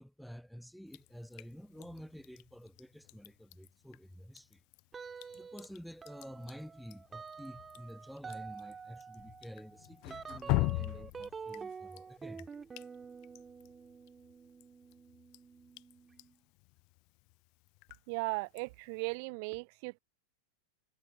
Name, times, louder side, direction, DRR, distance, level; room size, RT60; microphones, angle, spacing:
voice 1, 0.0-4.6 5.3-12.5, equal, ahead, 1.3 m, -49 dB
Drip, 0.9-19.1, left 32 dB, 45° left, 0.3 m, -43 dB
sound 1, 4.9-5.7 6.0-16.3, right 5 dB, 15° right, 2.3 m, -48 dB
voice 2, 18.1-20.0, right 31 dB, 45° right, 0.6 m, -37 dB
figure-of-eight pair, 90°, 0 cm